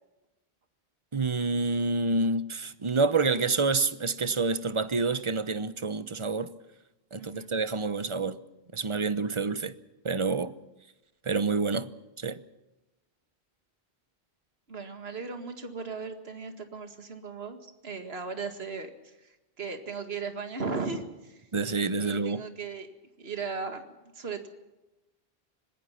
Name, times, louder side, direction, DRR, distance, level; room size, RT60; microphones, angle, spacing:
voice 1, 1.1-6.5 7.1-8.4 8.7-9.7 10.0-10.5 11.3-11.9 12.2-12.4 21.5-22.4, right 3 dB, 30° right, 1.0 m, -28 dB
voice 2, 7.1-7.5 14.7-21.5 22.0-22.9 23.2-24.5, right 4 dB, 70° right, 2.3 m, -37 dB
27.0 x 19.5 x 5.9 m
omnidirectional pair, 1.1 m